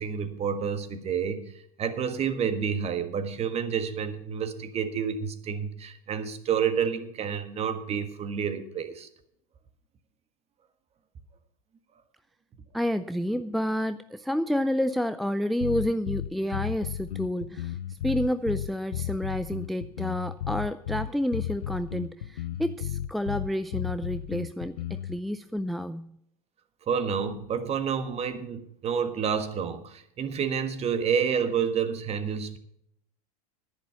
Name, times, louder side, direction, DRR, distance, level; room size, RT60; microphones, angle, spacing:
voice 1, 0.0-9.1 26.9-32.6, right 7 dB, 30° right, 10 dB, 1.5 m, -29 dB
voice 2, 12.7-17.8 18.0-26.1, equal, ahead, 11 dB, 0.4 m, -29 dB
sound 1, 15.6-25.2, left 11 dB, 75° left, 0.6 m, -34 dB
10.5 x 10.5 x 5.7 m, 0.72 s
hypercardioid pair, 90°, 19 cm